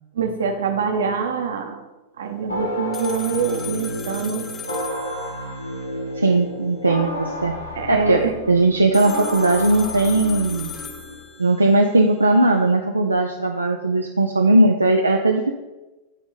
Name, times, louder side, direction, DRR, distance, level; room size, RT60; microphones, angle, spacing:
voice 1, 0.1-1.8 2.2-4.5 4.9-5.1 7.7-8.3, right 5 dB, 65° right, 5 dB, 0.9 m, -25 dB
sound 1, 2.5-11.2, left 1 dB, 85° left, 1.3 m, -31 dB
sound 2, 2.9-5.9 8.9-11.8, left 5 dB, 20° left, 0.8 m, -37 dB
voice 2, 6.2-7.6 7.9-10.7 11.4-15.5, right 2 dB, 80° right, 3 dB, 0.4 m, -18 dB
9.1 x 3.6 x 5.4 m, 1.1 s
figure-of-eight pair, 90°, 0 cm